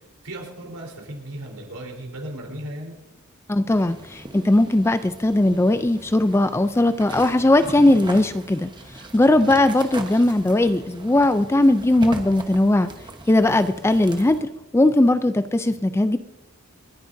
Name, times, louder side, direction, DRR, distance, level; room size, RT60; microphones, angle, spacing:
voice 1, 0.2-2.9 9.4-9.6, right 1 dB, 80° right, 1 dB, 3.9 m, -36 dB
voice 2, 3.5-8.7 9.1-12.9 13.3-16.2, left 1 dB, 10° left, 11 dB, 0.3 m, -19 dB
sound 1, 3.7-14.4, right 2 dB, 20° right, 1.0 m, -39 dB
28.5 x 10.0 x 2.7 m, 0.95 s
head